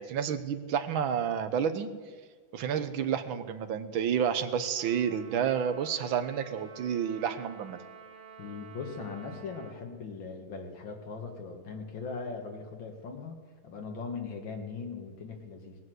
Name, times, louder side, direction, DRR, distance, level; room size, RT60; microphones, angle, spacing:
voice 1, 0.0-1.9 2.5-7.8, right 8 dB, 90° right, 10 dB, 1.7 m, -30 dB
Trumpet, 4.8-9.8, right 6 dB, 30° right, 1.3 m, -50 dB
voice 2, 8.4-13.4 13.6-15.8, left 4 dB, 75° left, 3 dB, 2.4 m, -39 dB
18.5 x 9.5 x 7.8 m, 1.5 s
omnidirectional pair, 2.1 m